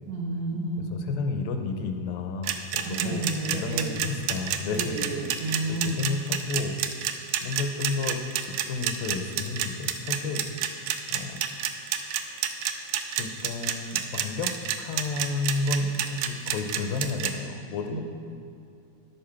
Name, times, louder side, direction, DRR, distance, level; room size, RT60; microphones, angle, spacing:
voice 1, 0.1-0.9 2.8-4.1 4.7-6.0 17.9-18.0, right 2 dB, 65° right, -2 dB, 1.9 m, -31 dB
voice 2, 0.8-3.3 3.6-5.4 5.7-10.4 11.1-11.4 13.2-18.0, left 3 dB, 85° left, 5 dB, 2.5 m, -32 dB
sound 1, 2.4-17.3, right 11 dB, 85° right, 1.7 m, -28 dB
11.0 x 8.9 x 5.8 m, 2.4 s
omnidirectional pair, 4.2 m